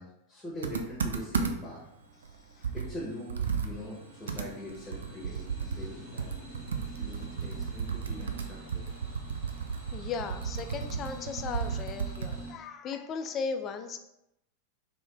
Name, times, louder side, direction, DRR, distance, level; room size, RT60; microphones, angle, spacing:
voice 1, 0.0-1.8 2.7-3.3 3.6-6.3 7.0-8.8, left 1 dB, 10° left, -5 dB, 1.2 m, -42 dB
Computer keyboard, 0.6-1.8 2.2-2.3 2.6-12.5, right 6 dB, 70° right, 0.3 m, -34 dB
sound 1, 1.6-12.5, right 2 dB, 50° right, 1.4 m, -48 dB
voice 2, 9.9-14.0, left 5 dB, 30° left, 7 dB, 0.4 m, -36 dB
3.1 x 2.9 x 3.3 m, 0.84 s
figure-of-eight pair, 90°, 0 cm